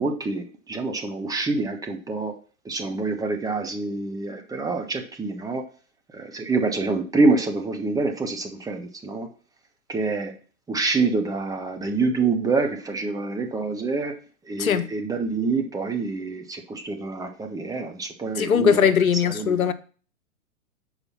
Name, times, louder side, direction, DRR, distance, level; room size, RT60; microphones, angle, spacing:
voice 1, 0.0-2.3 2.6-5.7 6.1-9.3 9.9-10.3 10.7-14.1 14.4-19.7, right 3 dB, 10° right, 0.9 m, -26 dB
voice 2, 18.4-19.7, left 7 dB, 80° left, 0.8 m, -20 dB
6.8 x 4.9 x 5.5 m
figure-of-eight pair, 110°, 42 cm